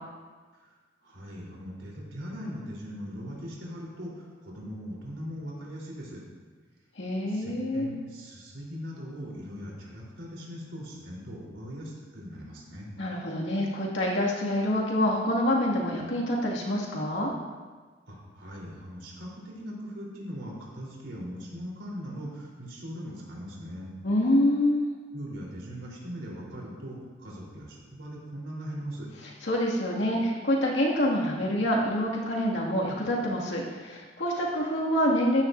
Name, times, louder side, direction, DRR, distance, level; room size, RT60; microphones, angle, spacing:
voice 1, 0.6-6.2 7.3-12.9 18.1-23.9 25.1-29.1, equal, 85° right, -4 dB, 3.7 m, -40 dB
voice 2, 7.0-7.9 13.0-17.3 24.0-24.9 29.2-35.4, left 1 dB, 75° left, -3 dB, 2.2 m, -26 dB
14.5 x 10.5 x 2.6 m, 1.4 s
head